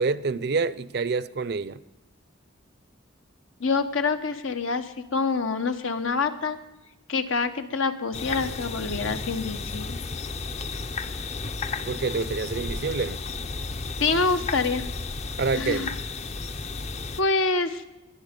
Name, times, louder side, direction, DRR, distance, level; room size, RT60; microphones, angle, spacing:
voice 1, 0.0-1.8 11.9-13.2 15.4-15.9, right 4 dB, 55° right, 17 dB, 0.5 m, -27 dB
voice 2, 3.6-6.6 7.1-10.0 14.0-14.8 15.5-15.9 17.2-17.8, left 4 dB, 85° left, 8 dB, 1.2 m, -26 dB
sound 1, 8.1-17.2, left 3 dB, 35° left, 0.6 m, -33 dB
20.5 x 10.5 x 5.2 m, 1.0 s
head